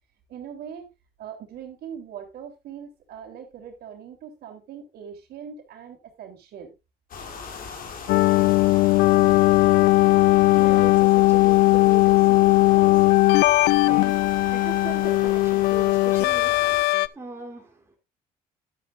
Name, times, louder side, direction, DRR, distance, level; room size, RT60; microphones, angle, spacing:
voice 1, 0.3-0.9 1.2-6.8, right 8 dB, 70° right, 3.5 m, -41 dB
sound 1, 7.1-16.8, left 5 dB, 55° left, 3.2 m, -38 dB
sound 2, 8.1-17.1, left 20 dB, 85° left, 0.6 m, -18 dB
voice 2, 9.0-18.0, right 2 dB, 15° right, 3.3 m, -41 dB
12.0 x 11.5 x 2.5 m
cardioid pair, 110°, 17 cm